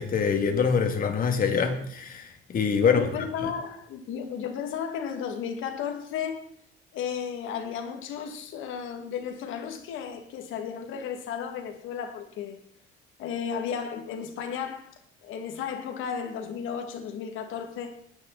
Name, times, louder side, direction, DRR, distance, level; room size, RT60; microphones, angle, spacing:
voice 1, 0.0-2.3 2.5-3.0, left 6 dB, 45° left, 2.6 m, -24 dB
voice 2, 2.8-6.4 6.9-12.6 13.2-14.9 15.2-17.9, left 7 dB, 80° left, 2.6 m, -34 dB
20.0 x 10.5 x 4.3 m
cardioid pair, 140°, 20 cm